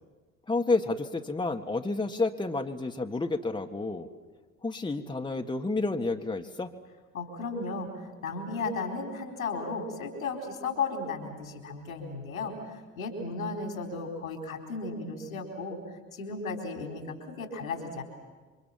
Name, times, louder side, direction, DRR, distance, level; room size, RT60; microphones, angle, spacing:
voice 1, 0.5-4.1 4.6-6.7, left 3 dB, 10° left, 4 dB, 1.7 m, -30 dB
voice 2, 7.1-7.9 8.2-15.8 16.1-18.0, left 3 dB, 85° left, 4 dB, 4.3 m, -35 dB
28.5 x 24.5 x 7.5 m, 1.4 s
figure-of-eight pair, 60°, 40 cm